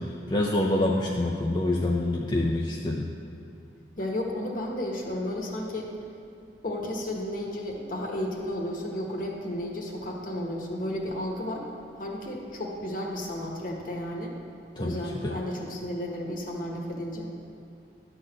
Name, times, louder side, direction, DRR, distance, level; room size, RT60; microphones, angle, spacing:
voice 1, 0.3-3.1 14.8-14.9 15.2-15.3, left 1 dB, 25° left, -2 dB, 0.5 m, -26 dB
voice 2, 4.0-5.9 6.6-11.7 12.0-14.4 14.8-17.3, left 1 dB, 50° left, 0 dB, 1.3 m, -33 dB
11.0 x 4.0 x 7.6 m, 2.4 s
head